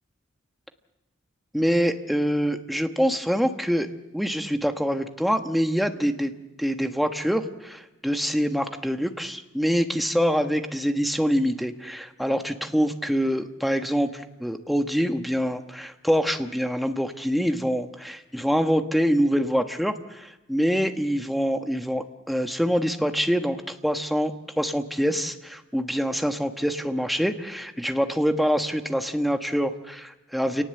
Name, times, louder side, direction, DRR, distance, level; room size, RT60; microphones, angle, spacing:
voice 1, 1.5-3.9 4.1-6.3 6.6-30.6, equal, ahead, 6 dB, 1.3 m, -25 dB
29.0 x 19.0 x 7.9 m, 0.98 s
head